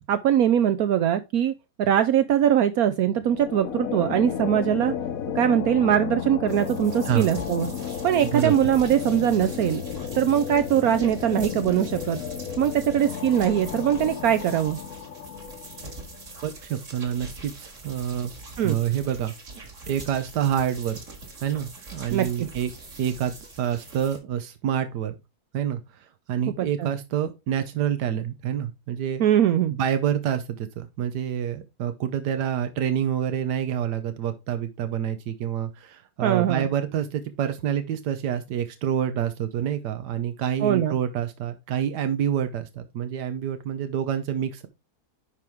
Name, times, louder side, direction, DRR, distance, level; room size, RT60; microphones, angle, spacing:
voice 1, 0.1-1.5 1.8-4.9 5.3-7.7 8.0-9.8 10.1-12.2 12.6-14.8 18.6-18.8 22.1-22.5 26.6-26.9 29.2-29.8 36.2-36.7 40.6-41.0, right 10 dB, 70° right, 1.0 m, -22 dB
sound 1, 3.2-16.3, left 8 dB, 65° left, 1.2 m, -33 dB
sound 2, 6.5-24.2, right 3 dB, 50° right, 2.2 m, -43 dB
voice 2, 16.4-18.3 18.6-19.3 19.9-21.0 21.4-22.7 23.0-25.2 25.5-29.2 29.7-44.7, right 9 dB, 90° right, 1.4 m, -27 dB
10.5 x 4.6 x 3.5 m
omnidirectional pair, 1.7 m